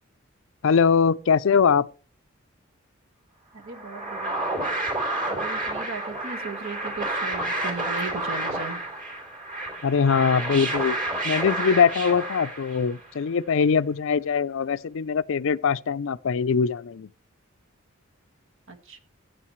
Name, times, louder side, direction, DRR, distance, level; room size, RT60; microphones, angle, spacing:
voice 1, 0.6-1.9 9.8-11.0 11.2-17.1, left 6 dB, 65° left, 0.5 m, -22 dB
voice 2, 3.5-4.5 5.3-8.8 18.7-19.0, right 4 dB, 65° right, 1.6 m, -37 dB
sound 1, 3.7-13.1, right 2 dB, 40° right, 3.1 m, -30 dB
15.5 x 8.1 x 3.1 m
head